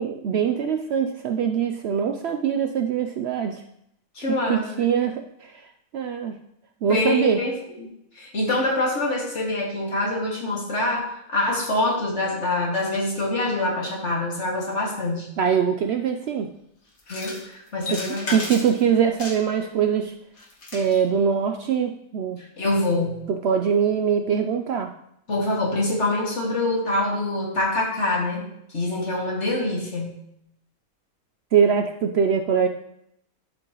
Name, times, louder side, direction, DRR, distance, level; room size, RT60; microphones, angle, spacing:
voice 1, 0.0-3.6 4.3-5.5 5.9-6.3 6.8-7.4 15.4-16.5 17.9-18.0 18.3-20.1 20.7-22.4 23.3-24.9 31.5-32.7, right 7 dB, 65° right, 5 dB, 0.7 m, -23 dB
voice 2, 4.1-4.9 6.9-7.9 8.1-15.3 17.1-18.4 22.4-23.3 25.3-28.5 28.7-30.1, left 2 dB, 55° left, -3 dB, 2.3 m, -25 dB
sound 1, 17.0-17.5 17.8-18.8 19.2-19.7 20.4-21.0, left 3 dB, 75° left, 2.0 m, -34 dB
12.5 x 5.4 x 3.0 m, 0.76 s
omnidirectional pair, 1.4 m